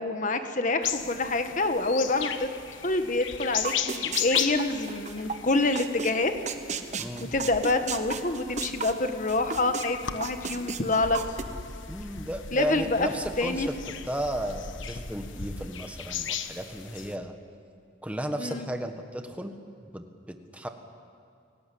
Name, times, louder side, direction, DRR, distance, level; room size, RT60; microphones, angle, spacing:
voice 1, 0.0-2.5 2.8-6.3 7.3-11.2 12.5-13.1 13.4-13.7 18.4-18.6, left 2 dB, 40° left, 7 dB, 1.5 m, -27 dB
sound 1, 0.8-17.1, left 8 dB, 80° left, 1.3 m, -36 dB
sound 2, 3.6-5.4 5.7-6.1 6.5-9.9 10.2-11.4, right 5 dB, 35° right, 1.1 m, -33 dB
voice 2, 7.0-7.3 11.9-13.7 14.1-17.3 18.0-19.5 19.9-20.7, right 1 dB, 5° right, 6 dB, 1.5 m, -34 dB
29.5 x 18.0 x 8.7 m, 2.3 s
head